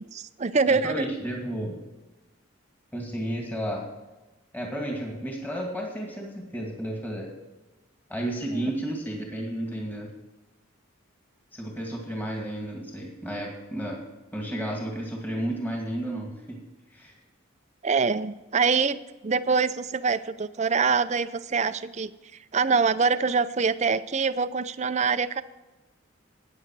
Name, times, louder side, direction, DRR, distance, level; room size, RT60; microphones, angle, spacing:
voice 1, 0.0-1.1 17.8-22.1 22.5-25.4, right 5 dB, 35° right, 14 dB, 0.5 m, -24 dB
voice 2, 0.6-1.8 2.9-3.9 4.5-7.3 8.1-10.1 11.5-14.0 14.3-16.6 16.9-17.1, right 1 dB, 10° left, -1 dB, 2.2 m, -32 dB
14.5 x 9.7 x 4.7 m, 1.1 s
head